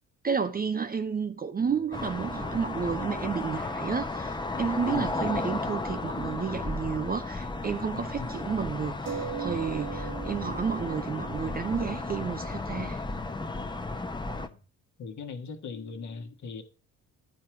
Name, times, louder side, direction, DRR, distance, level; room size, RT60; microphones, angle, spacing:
voice 1, 0.2-13.0, right 6 dB, 20° right, 0.7 m, -31 dB
sound 1, 1.6-5.5 5.7-5.8 9.1-14.3, right 7 dB, 40° right, 1.3 m, -43 dB
sound 2, 1.9-14.5, left 3 dB, 10° left, 0.9 m, -34 dB
voice 2, 4.9-5.2 8.2-8.3 14.3-14.6 15.0-16.6, left 5 dB, 45° left, 1.5 m, -39 dB
11.0 x 4.4 x 5.9 m
figure-of-eight pair, 50°, 42 cm